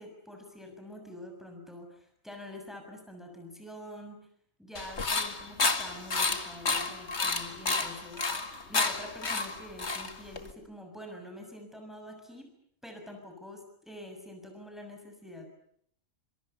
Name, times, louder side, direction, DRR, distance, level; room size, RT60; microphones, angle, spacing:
voice 1, 0.0-4.2 4.6-8.2 8.7-12.5 12.8-15.5, left 1 dB, ahead, 4 dB, 6.6 m, -46 dB
sound 1, 4.8-10.5, left 4 dB, 50° left, 2.5 m, -30 dB
29.5 x 27.0 x 6.9 m, 0.69 s
omnidirectional pair, 1.5 m